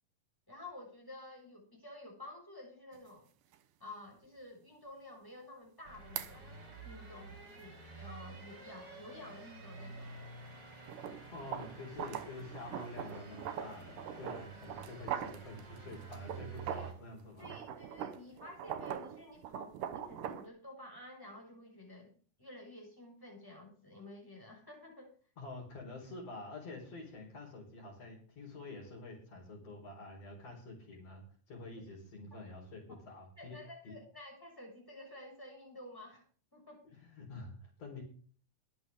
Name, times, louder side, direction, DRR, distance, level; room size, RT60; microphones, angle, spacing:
voice 1, 0.5-3.3 3.8-10.4 16.7-16.9 17.4-22.1 22.4-25.1 33.4-36.2 36.5-36.8, left 1 dB, 5° left, 0 dB, 6.0 m, -51 dB
sound 1, 2.9-3.0 3.5-3.6 6.2-6.3 10.8-17.0 17.4-20.5, right 9 dB, 75° right, 2.6 m, -42 dB
sound 2, 5.8-16.9, right 4 dB, 30° right, 4.2 m, -50 dB
voice 2, 11.3-17.6 25.4-34.0 36.9-38.0, left 2 dB, 45° left, -4 dB, 5.4 m, -48 dB
23.0 x 8.4 x 3.7 m, 0.43 s
omnidirectional pair, 4.1 m